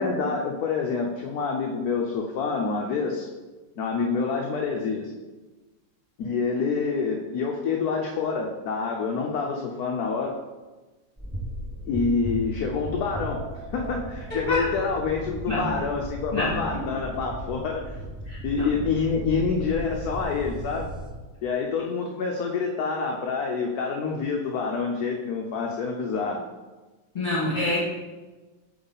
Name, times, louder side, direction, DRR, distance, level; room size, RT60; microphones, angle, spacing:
voice 1, 0.0-3.3 3.8-5.1 6.2-10.3 11.9-13.4 13.7-17.9 18.4-20.9 21.4-26.4, left 5 dB, 65° left, 1 dB, 1.0 m, -27 dB
sound 1, 11.2-21.1, right 1 dB, 10° right, 0.5 m, -36 dB
voice 2, 14.3-14.6 15.5-15.7 16.3-16.5 16.7-16.8 18.3-18.7 27.1-27.8, left 2 dB, 25° left, -6 dB, 2.2 m, -27 dB
7.5 x 3.6 x 4.0 m, 1.2 s
omnidirectional pair, 2.0 m